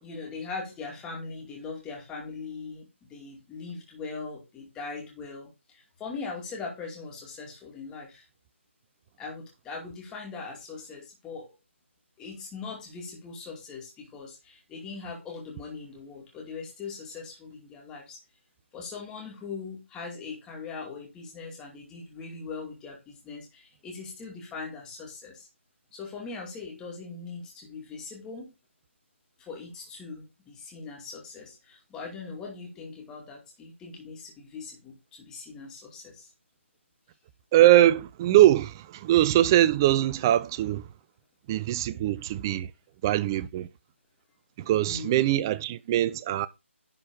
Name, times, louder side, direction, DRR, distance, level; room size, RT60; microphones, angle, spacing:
voice 1, 0.0-8.3 9.2-11.5 12.2-18.2 18.7-25.5 25.9-28.5 29.4-36.3 44.8-45.1, left 4 dB, 10° left, 2.4 m, -40 dB
voice 2, 37.5-40.9 41.5-42.7 43.0-43.7 44.6-46.5, right 13 dB, 15° right, 0.4 m, -22 dB
11.0 x 4.4 x 5.1 m
figure-of-eight pair, 155°, 7 cm